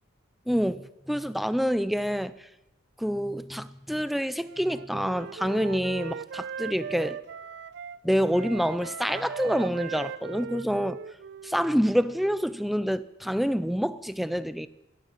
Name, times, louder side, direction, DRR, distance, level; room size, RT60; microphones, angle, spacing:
voice 1, 0.5-2.3 3.0-7.2 8.0-11.0 11.4-14.7, equal, ahead, 0.4 m, -27 dB
Wind instrument woodwind instrument, 4.4-8.0 8.3-12.1, right 7 dB, 55° right, 0.5 m, -39 dB
17.5 x 9.4 x 7.4 m
head